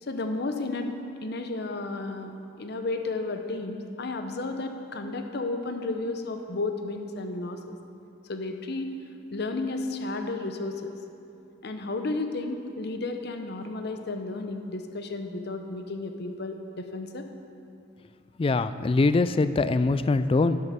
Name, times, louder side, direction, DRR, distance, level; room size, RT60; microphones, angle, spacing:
voice 1, 0.1-0.9 1.2-2.3 2.6-7.8 8.3-8.9 9.3-10.9 11.6-17.3, left 2 dB, 55° left, 6 dB, 0.8 m, -32 dB
voice 2, 18.4-20.6, left 3 dB, 30° left, 12 dB, 0.3 m, -23 dB
11.0 x 7.8 x 5.7 m, 2.6 s
head